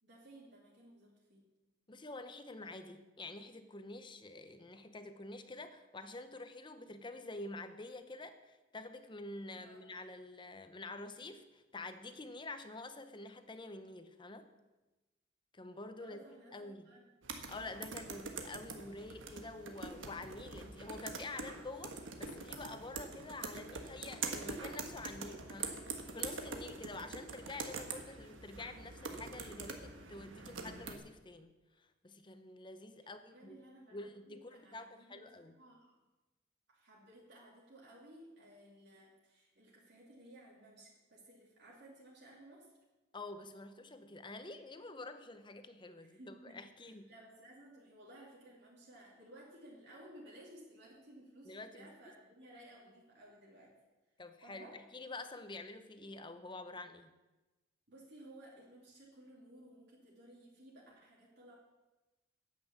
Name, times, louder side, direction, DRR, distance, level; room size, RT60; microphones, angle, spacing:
voice 1, 0.0-1.4 9.5-9.8 16.0-17.0 17.4-17.7 33.0-35.9 36.7-42.8 46.0-53.7 54.4-54.8 57.9-61.6, right 1 dB, 60° right, -5 dB, 2.6 m, -57 dB
voice 2, 1.9-14.5 15.5-16.9 17.5-33.6 33.9-35.5 43.1-47.1 51.5-52.1 54.2-54.7 54.9-57.1, left 2 dB, 25° left, 9 dB, 0.8 m, -48 dB
sound 1, 17.2-31.0, right 4 dB, 80° right, 1.4 m, -44 dB
9.9 x 8.5 x 7.3 m, 1.1 s
head